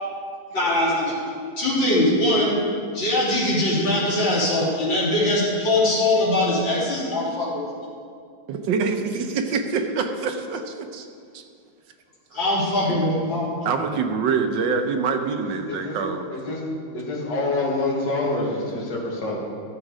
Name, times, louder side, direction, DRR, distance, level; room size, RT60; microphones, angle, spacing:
voice 1, 0.5-1.2 1.6-2.6 2.9-7.6 12.3-13.5, left 1 dB, 85° left, -8 dB, 4.0 m, -21 dB
voice 2, 8.5-11.1 11.3-11.4 12.9-13.0 13.6-16.3, right 5 dB, 75° right, 6 dB, 1.5 m, -25 dB
voice 3, 15.4-16.0 16.3-16.6 16.9-19.4, left 2 dB, 70° left, -3 dB, 2.6 m, -26 dB
14.0 x 7.3 x 5.0 m, 2.2 s
omnidirectional pair, 2.0 m